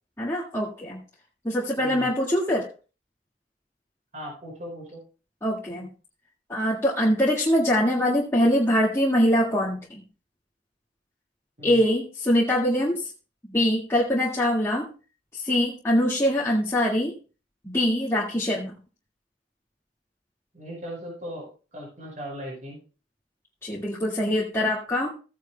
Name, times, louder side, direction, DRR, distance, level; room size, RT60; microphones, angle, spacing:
voice 1, 0.2-1.0 1.4-2.7 5.4-5.9 6.5-10.0 11.6-13.1 13.5-14.9 15.3-17.1 17.6-18.7 23.6-25.1, equal, 15° left, -5 dB, 1.9 m, -23 dB
voice 2, 1.8-2.1 4.1-5.0 11.6-11.8 20.5-22.8, equal, 45° right, -2 dB, 5.7 m, -38 dB
15.5 x 9.4 x 2.2 m, 0.34 s
head